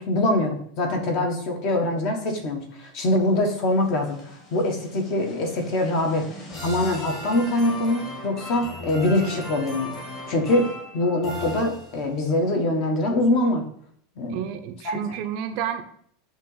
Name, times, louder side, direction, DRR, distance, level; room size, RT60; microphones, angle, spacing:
voice 1, 0.0-4.2 4.5-6.2 6.6-10.0 10.3-10.7 10.9-13.6 14.2-14.4 14.8-15.0, left 1 dB, 40° left, 3 dB, 1.3 m, -23 dB
sound 1, 3.3-12.3, left 1 dB, 25° left, 1.8 m, -38 dB
voice 2, 14.3-15.8, right 9 dB, 45° right, 9 dB, 0.5 m, -30 dB
7.8 x 3.0 x 5.5 m, 0.65 s
supercardioid pair, 175°, 0 cm